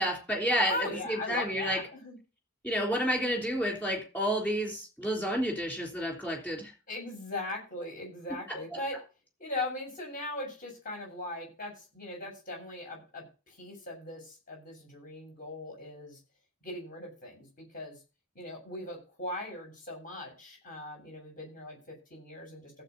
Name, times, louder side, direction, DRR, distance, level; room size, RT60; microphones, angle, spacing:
voice 1, 0.0-1.8 2.6-6.7, equal, 10° left, 0 dB, 3.5 m, -30 dB
voice 2, 0.7-2.2 6.9-9.0 9.4-16.2 16.6-18.0 18.4-22.7, left 2 dB, 40° left, 0 dB, 7.3 m, -39 dB
16.0 x 7.9 x 4.1 m, 0.32 s
head